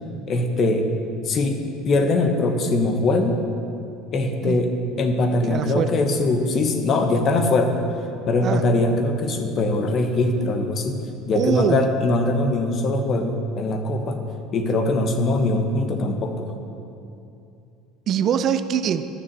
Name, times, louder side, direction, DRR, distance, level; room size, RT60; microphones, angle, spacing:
voice 1, 0.3-0.9 1.2-3.4 4.1-4.7 5.0-7.8 8.3-11.0 11.2-14.2 14.5-16.5, left 2 dB, 45° left, 5 dB, 1.3 m, -22 dB
voice 2, 5.5-5.9 8.4-8.6 11.3-11.8 18.1-19.1, right 8 dB, 50° right, 11 dB, 0.5 m, -23 dB
11.5 x 6.7 x 6.9 m, 2.6 s
supercardioid pair, 105°, 0 cm